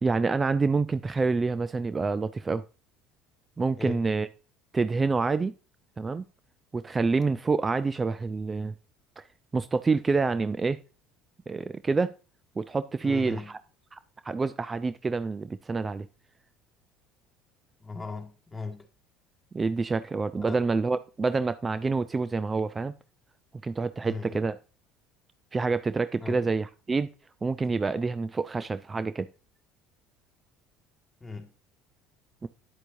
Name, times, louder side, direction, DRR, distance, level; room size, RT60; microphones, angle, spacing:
voice 1, 0.0-2.6 3.6-4.3 4.7-5.5 6.0-6.2 6.7-8.7 9.2-9.3 9.5-10.8 11.5-12.1 12.6-13.6 13.9-14.0 14.2-16.1 19.5-22.9 23.6-24.6 25.5-27.1 27.4-29.3 32.4-32.5, right 4 dB, 25° right, 0.4 m, -27 dB
voice 2, 13.0-13.5 17.8-18.8 20.5-20.6 24.0-24.4 26.2-26.5 27.6-27.7 31.2-31.5, left 4 dB, 20° left, 1.8 m, -38 dB
9.5 x 8.2 x 2.6 m
hypercardioid pair, 70°, 0 cm